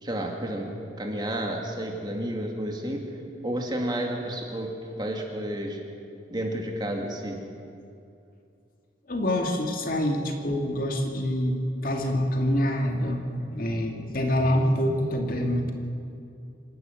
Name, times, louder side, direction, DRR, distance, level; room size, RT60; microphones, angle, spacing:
voice 1, 0.0-0.7 1.0-3.0 3.4-4.7 5.0-5.8 6.3-7.4, right 1 dB, 25° right, 1 dB, 2.3 m, -31 dB
voice 2, 9.1-11.6 11.8-15.7, equal, 50° left, 2 dB, 2.1 m, -26 dB
26.5 x 12.0 x 9.1 m, 2.5 s
head